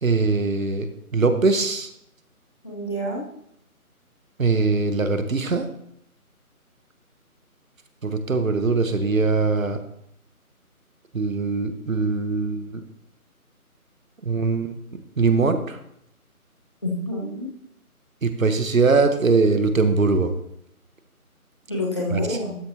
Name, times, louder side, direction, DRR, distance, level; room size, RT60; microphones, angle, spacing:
voice 1, 0.0-1.9 4.4-5.7 8.0-9.8 11.1-12.8 14.2-15.8 18.2-20.3 22.1-22.4, right 4 dB, 65° right, 9 dB, 1.2 m, -22 dB
voice 2, 2.6-3.2 16.8-17.5 21.7-22.6, left 1 dB, 20° left, -2 dB, 1.1 m, -27 dB
12.5 x 7.6 x 2.8 m, 0.75 s
figure-of-eight pair, 170°, 44 cm